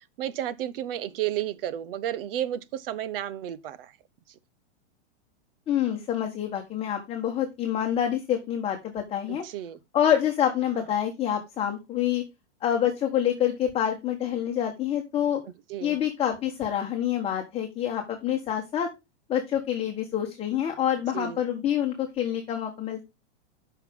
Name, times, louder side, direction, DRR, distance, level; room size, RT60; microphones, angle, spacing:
voice 1, 0.0-3.9 9.3-9.8 15.7-16.0 21.1-21.4, right 11 dB, 55° right, 1.1 m, -32 dB
voice 2, 5.7-9.4 9.9-12.2 12.6-15.4 15.8-18.9 19.3-23.0, left 10 dB, 15° left, 1.5 m, -27 dB
13.5 x 5.8 x 3.7 m
supercardioid pair, 150°, 34 cm